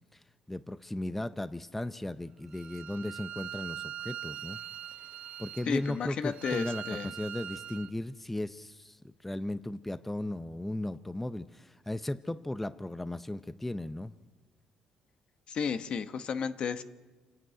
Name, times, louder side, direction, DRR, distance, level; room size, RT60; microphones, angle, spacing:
voice 1, 0.5-4.6 5.4-14.1, left 1 dB, 10° left, 12 dB, 0.6 m, -36 dB
Bowed string instrument, 2.5-7.9, right 10 dB, 55° right, 0.6 m, -42 dB
voice 2, 5.7-7.1 15.5-16.8, left 6 dB, 55° left, 9 dB, 1.2 m, -33 dB
27.0 x 11.0 x 9.2 m, 1.4 s
cardioid pair, 85°, 2 cm